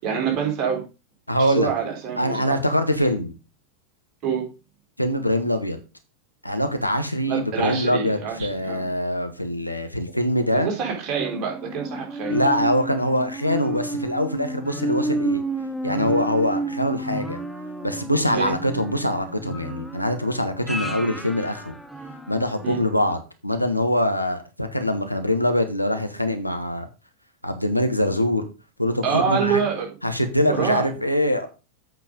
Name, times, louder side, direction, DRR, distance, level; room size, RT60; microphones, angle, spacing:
voice 1, 0.0-0.8 1.4-2.5 4.2-4.5 7.3-8.9 10.5-12.4 18.3-18.5 22.6-22.8 29.0-29.9 30.5-30.9, right 6 dB, 35° right, 0 dB, 4.1 m, -26 dB
voice 2, 1.3-1.7 2.2-3.3 5.0-5.8 6.4-10.7 12.3-15.4 15.8-17.4 17.8-21.7 22.3-26.9 27.4-28.4 28.8-29.6 30.0-31.5, left 1 dB, 90° left, 7 dB, 1.2 m, -23 dB
sound 1, 11.2-22.7 23.1-23.2, right 2 dB, ahead, 0.9 m, -31 dB
8.2 x 5.5 x 5.2 m, 0.31 s
figure-of-eight pair, 90°, 0 cm